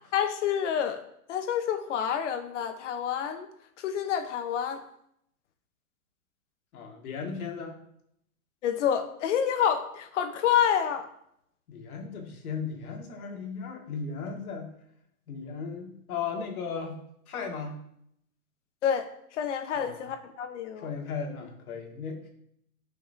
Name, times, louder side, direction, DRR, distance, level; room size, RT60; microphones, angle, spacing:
voice 1, 0.1-1.0 1.3-3.5 3.8-4.8 8.6-11.1 18.8-20.9, left 8 dB, 55° left, 8 dB, 1.1 m, -28 dB
voice 2, 6.7-7.8 11.7-14.7 15.3-17.8 19.7-20.0 20.8-22.3, left 5 dB, 75° left, 1 dB, 2.1 m, -36 dB
11.0 x 5.8 x 2.8 m, 0.72 s
supercardioid pair, 160°, 43 cm